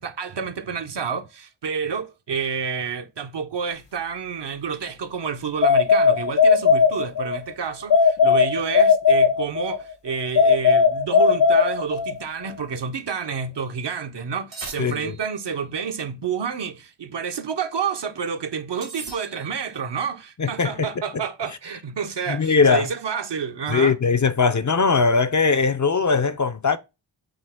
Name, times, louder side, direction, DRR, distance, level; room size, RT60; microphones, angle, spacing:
voice 1, 0.0-24.0, right 6 dB, 60° right, 0.7 m, -29 dB
sound 1, 5.6-7.4 7.9-9.8 10.4-12.2, left 5 dB, 60° left, 0.9 m, -17 dB
sound 2, 14.5-15.4 18.8-19.7, right 3 dB, 80° right, 1.7 m, -39 dB
voice 2, 14.8-15.1 20.4-20.9 22.3-22.9 23.7-26.8, left 5 dB, 40° left, 0.5 m, -20 dB
5.2 x 2.8 x 3.4 m
wide cardioid pair, 55°, 47 cm